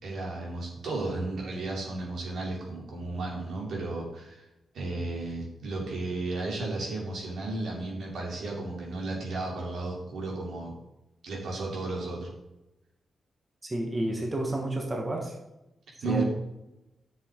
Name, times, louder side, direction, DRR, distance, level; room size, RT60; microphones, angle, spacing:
voice 1, 0.0-4.4 4.7-10.7 11.2-12.3 16.0-16.3, right 2 dB, 80° right, -2 dB, 3.1 m, -33 dB
voice 2, 13.6-15.4 16.0-16.2, right 1 dB, 20° right, 0 dB, 1.4 m, -30 dB
10.5 x 6.9 x 3.8 m, 0.93 s
wide cardioid pair, 125°, 0 cm